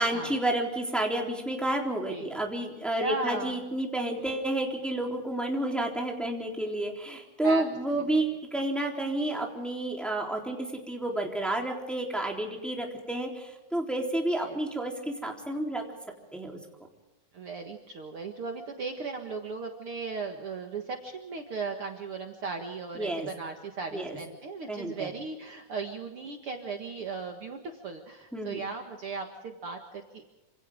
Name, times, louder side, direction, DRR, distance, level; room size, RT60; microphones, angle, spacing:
voice 1, 0.0-15.8 16.3-16.6 23.0-23.3 23.9-24.2 24.7-25.1 28.3-28.6, right 1 dB, ahead, 0 dB, 3.4 m, -30 dB
voice 2, 3.0-3.6 7.4-7.6 7.9-8.1 14.4-14.6 17.3-30.3, right 4 dB, 50° right, 3 dB, 2.3 m, -37 dB
28.0 x 26.5 x 3.7 m, 1.0 s
omnidirectional pair, 3.4 m